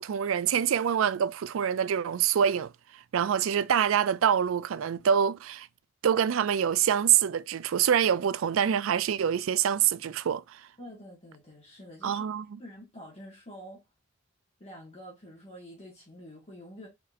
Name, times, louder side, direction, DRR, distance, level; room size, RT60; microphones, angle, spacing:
voice 1, 0.0-5.7 6.0-10.7 12.0-12.4, right 8 dB, 75° right, 0.4 m, -26 dB
voice 2, 10.8-12.2 12.6-13.8 14.6-16.9, equal, 30° left, 1.8 m, -47 dB
4.3 x 4.2 x 2.5 m
head